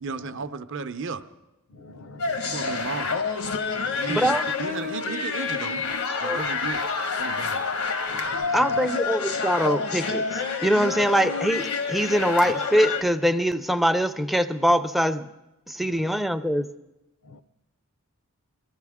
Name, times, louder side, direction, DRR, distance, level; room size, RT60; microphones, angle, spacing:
voice 1, 0.0-1.2 1.9-2.1 2.4-3.1 3.9-5.8 6.2-6.8 7.2-7.6, right 4 dB, 60° right, 0.6 m, -34 dB
voice 2, 1.7-2.9 3.7-4.3 6.4-6.5 7.3-7.6 8.1-8.8 15.9-16.1 17.2-17.4, left 3 dB, 65° left, 0.5 m, -46 dB
sound 1, 2.2-13.0, left 4 dB, 80° left, 1.1 m, -28 dB
voice 3, 4.1-4.4 6.2-6.4 8.5-15.3 15.7-16.7, equal, ahead, 0.4 m, -23 dB
22.0 x 14.0 x 3.6 m
head